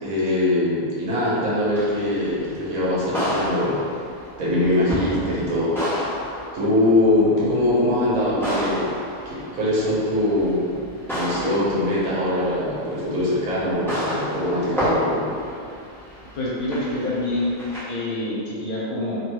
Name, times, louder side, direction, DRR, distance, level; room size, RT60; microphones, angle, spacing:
voice 1, 0.0-3.8 4.4-6.1 6.5-8.9 9.3-10.7 11.1-15.2, left 1 dB, 70° right, -7 dB, 1.2 m, -22 dB
sound 1, 1.6-17.8, equal, ahead, 0.7 m, -31 dB
voice 2, 16.4-17.5 17.8-19.2, left 1 dB, 85° left, -6 dB, 1.2 m, -26 dB
3.0 x 2.8 x 2.2 m, 2.4 s
omnidirectional pair, 1.5 m